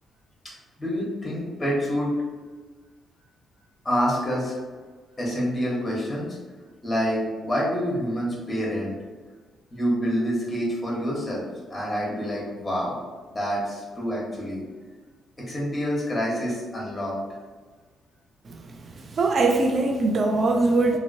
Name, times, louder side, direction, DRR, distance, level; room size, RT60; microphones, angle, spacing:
voice 1, 0.4-2.1 3.8-4.5 5.2-6.4 6.8-8.9 9.7-11.4 11.7-13.0 13.3-14.6 15.4-17.2, equal, 20° left, -5 dB, 1.2 m, -27 dB
voice 2, 19.1-21.0, right 3 dB, 45° right, 3 dB, 0.4 m, -21 dB
2.8 x 2.6 x 2.7 m, 1.4 s
cardioid pair, 90°, 0 cm